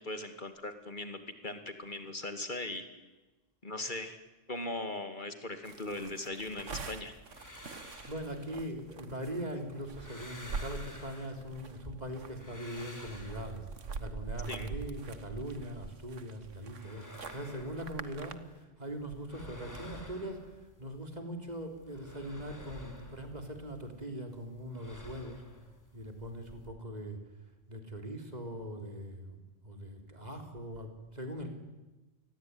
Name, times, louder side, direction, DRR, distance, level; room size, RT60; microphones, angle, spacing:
voice 1, 0.0-2.9 3.6-4.2 4.5-7.1 14.5-14.7, left 2 dB, 40° left, 8 dB, 2.6 m, -39 dB
sound 1, 5.6-18.4, right 5 dB, 80° right, 1.7 m, -44 dB
sound 2, 7.1-9.3 9.7-11.7 12.1-14.0 16.4-18.6 18.9-21.1 21.5-24.0 24.3-26.7, left 1 dB, 15° left, 3.3 m, -52 dB
voice 2, 8.0-13.7 14.0-20.5 20.8-25.4 25.9-27.2 27.7-29.4 29.6-31.5, equal, 35° right, 5 dB, 4.0 m, -41 dB
28.5 x 21.0 x 9.7 m, 1.1 s
omnidirectional pair, 1.2 m